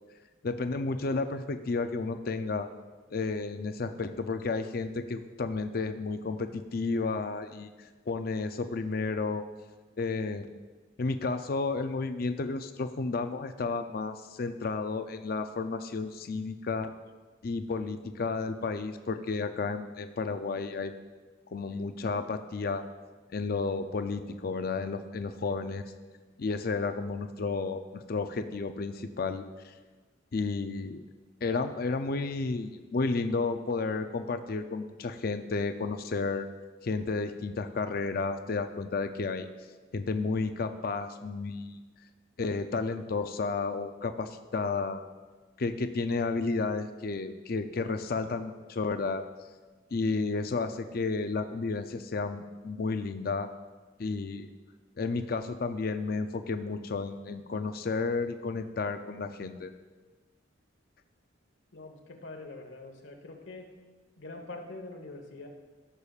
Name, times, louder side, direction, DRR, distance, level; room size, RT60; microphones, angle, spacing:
voice 1, 0.4-2.7 3.1-7.7 8.1-9.5 10.0-10.5 11.0-16.9 17.4-21.0 21.5-22.8 23.3-25.9 26.4-29.7 30.3-31.0 31.4-36.5 36.8-39.5 39.9-41.8 42.4-45.1 45.6-49.2 49.9-53.5 54.0-54.5 55.0-59.7, left 4 dB, 50° left, 8 dB, 0.5 m, -32 dB
voice 2, 61.7-63.7 64.2-65.5, left 2 dB, 85° left, 3 dB, 1.2 m, -44 dB
14.0 x 6.8 x 2.4 m, 1.4 s
head